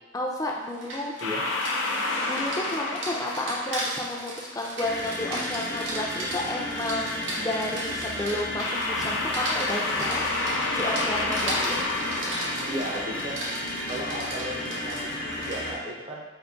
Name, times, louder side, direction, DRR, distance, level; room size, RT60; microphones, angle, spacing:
voice 1, 0.1-1.1 2.2-10.5 10.7-11.9, left 1 dB, 20° left, -1 dB, 0.4 m, -32 dB
Rain, 0.6-15.7, right 1 dB, 80° right, 0.8 m, -37 dB
sound 1, 1.2-4.5 8.6-13.4, left 2 dB, 90° left, 0.5 m, -30 dB
sound 2, 4.8-15.8, left 1 dB, 55° left, 0.7 m, -33 dB
voice 2, 12.7-13.4 13.7-16.2, right 1 dB, 35° right, -3 dB, 0.5 m, -35 dB
3.5 x 2.6 x 3.9 m, 1.2 s
head